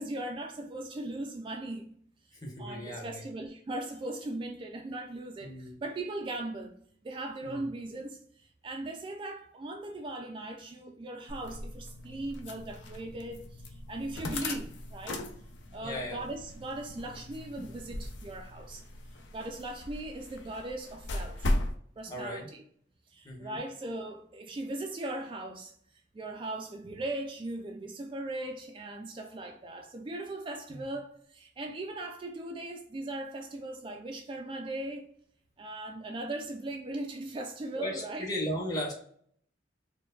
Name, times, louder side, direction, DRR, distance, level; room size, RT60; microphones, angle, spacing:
voice 1, 0.0-1.9 2.6-6.8 7.0-15.2 15.7-18.8 19.3-21.5 22.0-22.6 23.1-25.7 26.1-35.1 35.6-38.3, right 2 dB, 30° right, 0.3 m, -39 dB
voice 2, 2.3-3.2 5.4-5.8 7.4-7.6 15.8-16.3 22.1-22.5 23.2-23.6 30.7-30.9 37.7-38.9, equal, 20° left, 0.8 m, -36 dB
sound 1, 11.3-21.8, left 1 dB, 75° left, 0.5 m, -38 dB
4.4 x 2.2 x 2.3 m
head